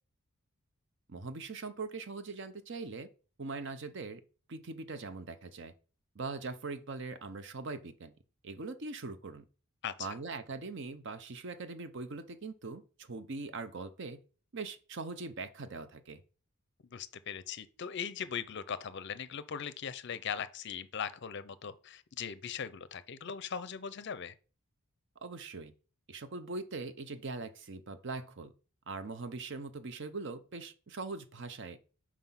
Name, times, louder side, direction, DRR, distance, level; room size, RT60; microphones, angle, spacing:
voice 1, 1.1-3.1 3.4-4.2 4.5-5.7 6.2-8.1 8.4-9.4 10.0-14.2 14.5-16.2 25.2-25.7 26.1-28.5 28.9-31.8, right 3 dB, 55° right, 0.6 m, -41 dB
voice 2, 9.8-10.2 16.9-24.3, left 7 dB, 50° left, 0.5 m, -40 dB
5.7 x 4.8 x 5.7 m
head